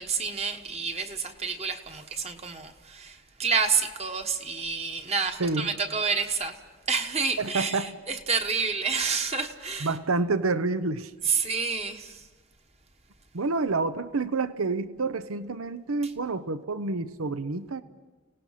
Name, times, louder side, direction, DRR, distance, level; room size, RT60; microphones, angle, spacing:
voice 1, 0.0-6.6 6.9-9.9 11.2-12.2, right 5 dB, 30° right, 6 dB, 1.3 m, -29 dB
voice 2, 7.4-8.0 9.8-11.1 13.3-17.8, right 3 dB, 85° right, 13 dB, 0.8 m, -28 dB
30.0 x 18.0 x 5.8 m, 1.3 s
head